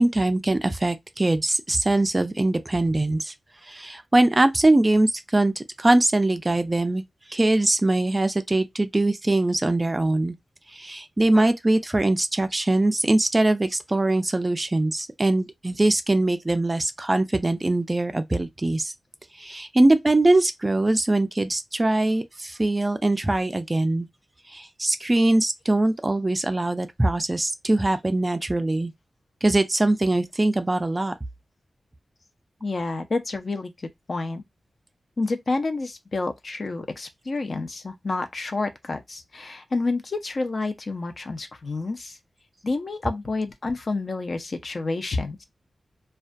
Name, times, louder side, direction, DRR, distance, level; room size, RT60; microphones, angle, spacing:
voice 1, 0.0-3.3 3.6-7.0 7.3-10.4 10.7-18.9 19.4-24.1 24.5-28.9 29.4-31.1, right 2 dB, 25° right, 0.3 m, -22 dB
voice 2, 32.6-33.7 34.1-34.4 35.2-42.2 42.6-45.4, left 3 dB, 50° left, 0.4 m, -29 dB
2.3 x 2.2 x 2.5 m
wide cardioid pair, 100°, 0 cm